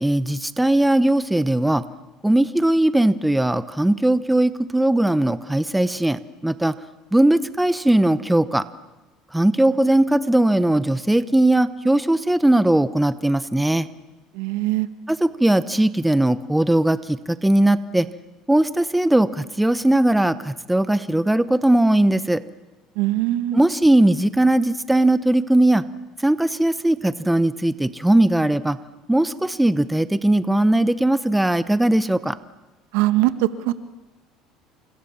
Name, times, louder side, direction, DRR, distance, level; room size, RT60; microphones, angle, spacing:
voice 1, 0.0-1.8 2.2-6.8 7.1-8.6 9.3-13.9 15.1-18.1 18.5-22.4 23.5-25.8 26.2-28.8 29.1-32.4, right 1 dB, 5° right, 13 dB, 0.9 m, -19 dB
voice 2, 14.4-14.9 23.0-23.6 32.9-33.3 33.6-33.7, right 17 dB, 85° right, 11 dB, 1.6 m, -21 dB
29.5 x 27.5 x 7.3 m, 1.1 s
cardioid pair, 130°, 0 cm